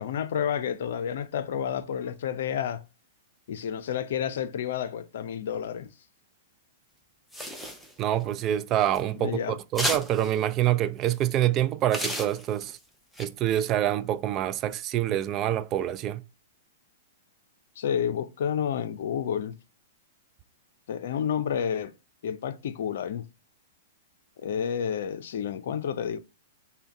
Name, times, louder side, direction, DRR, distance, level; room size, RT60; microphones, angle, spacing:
voice 1, 0.0-2.8 3.5-5.9 9.1-9.6 17.8-19.6 20.9-21.9 22.2-23.2 24.4-26.2, left 8 dB, 65° left, 0.5 m, -30 dB
sound 1, 7.3-8.2 8.8-9.0 9.8-10.3 11.1-11.2 11.9-12.8 13.2-13.3, equal, ahead, 0.8 m, -32 dB
voice 2, 8.0-12.8 13.2-16.2, right 12 dB, 35° right, 0.4 m, -26 dB
5.6 x 2.2 x 4.0 m
hypercardioid pair, 110°, 0 cm